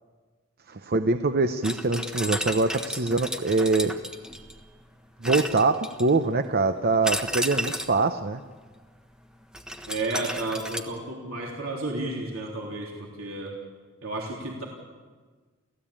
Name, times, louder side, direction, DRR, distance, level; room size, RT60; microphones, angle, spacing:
voice 1, 0.7-3.9 5.2-8.4, right 3 dB, 50° right, 9 dB, 0.8 m, -24 dB
sound 1, 1.6-4.6 5.2-6.2 7.0-8.0 9.5-10.8, equal, 5° right, 1.3 m, -32 dB
voice 2, 9.9-13.5 14.0-14.7, right 2 dB, 85° right, -1 dB, 3.4 m, -32 dB
29.5 x 15.5 x 8.8 m, 1.5 s
head